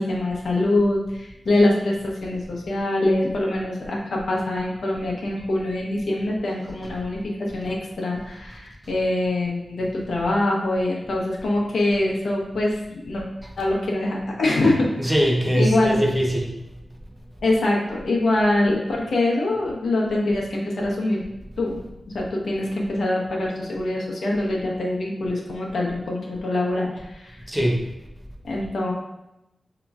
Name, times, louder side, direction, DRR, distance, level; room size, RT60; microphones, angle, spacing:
voice 1, 0.0-13.2 13.6-15.1 15.5-16.0 17.4-21.2 21.6-21.8 22.1-27.4 28.4-28.9, left 2 dB, 85° left, -3 dB, 0.8 m, -24 dB
voice 2, 15.0-16.5 27.5-27.9, equal, 10° right, -1 dB, 0.7 m, -22 dB
5.1 x 2.9 x 2.3 m, 0.92 s
wide cardioid pair, 125°, 0 cm